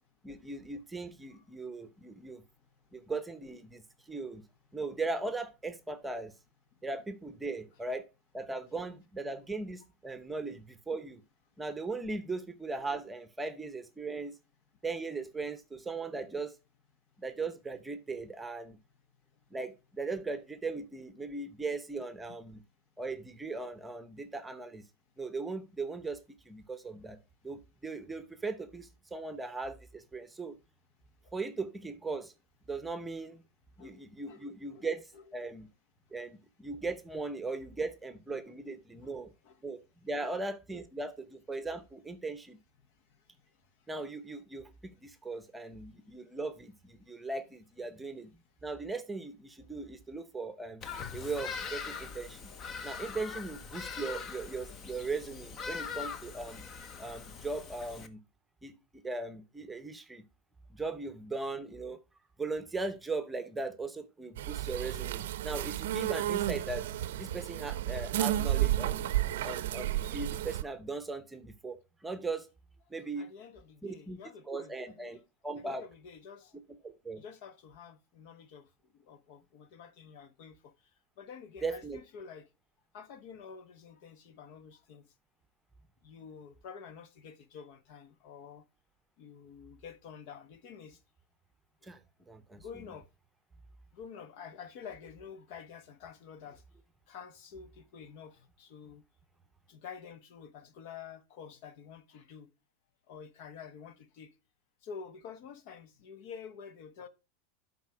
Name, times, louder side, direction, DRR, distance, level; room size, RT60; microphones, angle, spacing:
voice 1, 0.2-2.4 2.9-4.4 4.7-6.3 6.8-8.1 8.3-11.2 11.6-14.4 14.8-16.5 17.2-18.8 19.5-22.6 23.0-24.8 25.2-27.2 27.4-30.6 31.3-32.3 32.7-33.4 33.8-35.7 36.1-39.3 39.6-42.6 43.9-44.7 45.0-48.3 48.6-50.8 51.1-52.5 52.8-56.6 57.0-58.2 58.6-60.2 60.7-62.0 62.4-66.9 67.2-69.1 69.4-72.5 72.9-73.3 73.8-74.2 74.5-75.8 76.8-77.2 81.6-82.0 91.8-92.0 92.3-92.6, right 3 dB, 10° right, 0.8 m, -38 dB
voice 2, 33.8-34.8 35.1-35.2 39.0-39.6 40.2-40.4 40.7-40.8 73.2-75.2 75.6-76.6 77.2-78.7 79.1-80.7 81.2-82.5 82.9-85.1 86.0-88.6 89.2-91.0 92.6-93.0 93.9-96.6 97.1-99.0 99.7-102.5 103.1-104.3 104.8-107.1, left 6 dB, 60° left, 1.1 m, -49 dB
Bird vocalization bird call bird song, 50.8-58.1, left 6 dB, 30° left, 0.8 m, -42 dB
sound 1, 64.4-70.6, right 13 dB, 80° right, 0.6 m, -32 dB
11.0 x 4.1 x 4.9 m
supercardioid pair, 135°, 0 cm